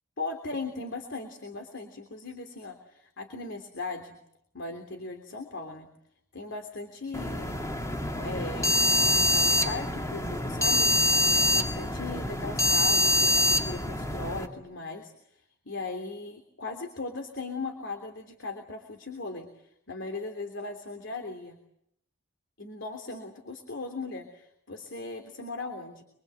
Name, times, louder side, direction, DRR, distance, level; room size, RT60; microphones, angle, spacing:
voice 1, 0.2-4.2 4.5-5.9 6.3-7.6 8.2-10.9 11.5-21.6 22.6-26.0, left 3 dB, 65° left, 6 dB, 3.3 m, -38 dB
sound 1, 7.1-14.5, left 1 dB, 15° left, 2.7 m, -25 dB
26.0 x 25.0 x 8.1 m, 0.74 s
head